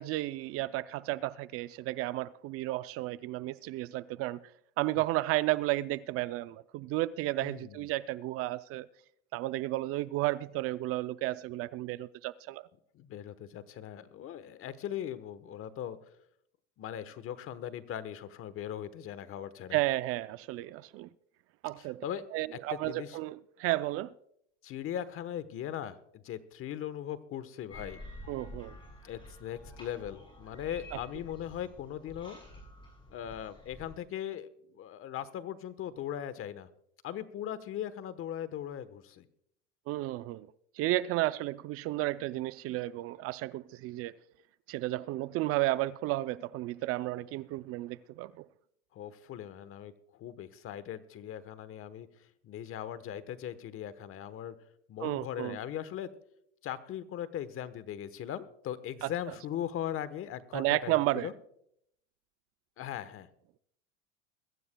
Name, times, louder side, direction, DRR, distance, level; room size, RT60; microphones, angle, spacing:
voice 1, 0.0-4.4 4.8-8.9 9.3-12.7 19.7-21.1 21.6-22.0 22.3-24.1 28.3-28.8 39.9-40.5 40.8-44.1 44.7-48.4 55.0-55.6 59.0-59.1 60.5-61.3, right 17 dB, 45° right, 0.4 m, -32 dB
voice 2, 7.4-7.9 12.9-16.0 16.8-19.8 21.8-22.2 22.7-23.2 24.6-28.0 29.0-32.4 33.1-34.5 34.8-36.7 37.0-39.3 48.9-52.1 52.4-54.5 54.9-56.1 56.6-61.3 62.8-63.3, left 10 dB, 40° left, 1.1 m, -39 dB
sound 1, 27.7-34.0, left 1 dB, 15° left, 6.5 m, -49 dB
22.0 x 15.0 x 2.2 m
supercardioid pair, 115°, 34 cm